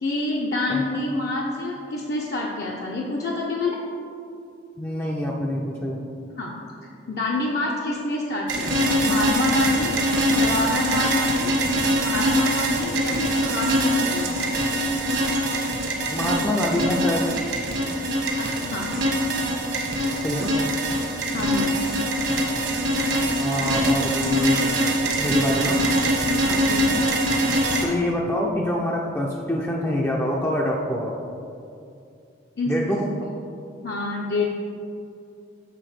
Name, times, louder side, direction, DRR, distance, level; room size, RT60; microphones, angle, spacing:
voice 1, 0.0-3.8 6.4-6.5 7.1-11.5 12.0-14.4 18.4-18.9 21.3-21.7 26.4-27.0 32.6-32.8 33.8-34.5, left 2 dB, 55° left, -3 dB, 0.6 m, -27 dB
voice 2, 4.8-6.1 16.1-17.3 20.2-20.6 23.4-24.7 25.1-25.8 27.8-31.2 32.7-33.1, left 1 dB, 10° left, -2 dB, 0.4 m, -25 dB
sound 1, 8.5-27.8, right 1 dB, 65° right, 1.2 m, -23 dB
6.9 x 4.0 x 6.1 m, 2.6 s
head